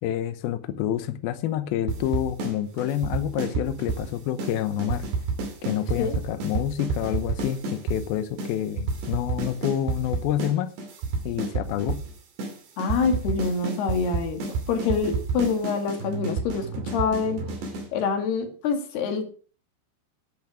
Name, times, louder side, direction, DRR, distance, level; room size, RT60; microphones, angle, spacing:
voice 1, 0.0-5.0 5.6-10.7 11.2-12.0, left 11 dB, 80° left, 11 dB, 2.2 m, -28 dB
sound 1, 1.9-2.5 2.8-4.1 4.4-4.5 4.8-8.0 8.4-8.5 8.8-10.5 10.8-12.1 12.4-12.5 12.8-17.9, right 4 dB, 65° right, 4.7 m, -29 dB
voice 2, 12.8-14.4 14.7-17.4 17.9-19.3, left 5 dB, 60° left, 6 dB, 3.8 m, -26 dB
10.5 x 10.5 x 6.2 m, 0.41 s
omnidirectional pair, 5.4 m